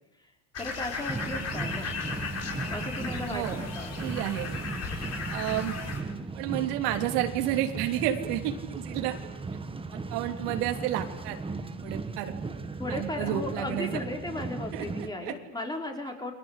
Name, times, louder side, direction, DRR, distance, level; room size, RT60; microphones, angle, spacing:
sound 1, 0.5-6.0, left 5 dB, 35° left, 6.2 m, -36 dB
voice 1, 0.6-1.9 2.7-4.0 12.8-16.3, left 2 dB, 10° left, 3 dB, 4.6 m, -36 dB
sound 2, 1.1-15.1, right 3 dB, 10° right, 1.6 m, -37 dB
voice 2, 3.3-3.6 4.0-4.5 5.3-5.7 6.3-9.1 9.9-11.4 11.8-12.3 12.9-13.9 14.7-14.8 15.2-15.3, right 12 dB, 80° right, 5 dB, 3.3 m, -30 dB
30.0 x 23.5 x 8.4 m, 0.90 s
cardioid pair, 140°, 46 cm